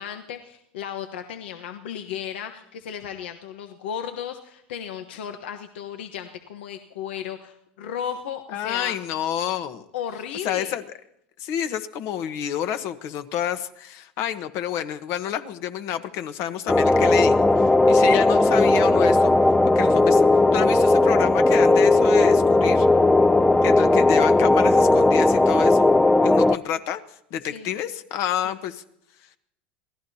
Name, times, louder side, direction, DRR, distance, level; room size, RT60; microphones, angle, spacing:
voice 1, 0.0-8.9 9.9-10.7 27.4-27.7 28.4-28.5, left 9 dB, 85° left, 6 dB, 1.2 m, -35 dB
voice 2, 8.5-9.8 10.4-10.8 11.4-19.3 19.7-20.2 20.5-22.9 23.6-25.9 26.2-27.0 27.3-28.8, left 10 dB, 55° left, 9 dB, 1.3 m, -29 dB
sound 1, 16.7-26.6, left 2 dB, 10° left, 0.6 m, -17 dB
27.0 x 18.0 x 2.9 m, 0.78 s
supercardioid pair, 100°, 6 cm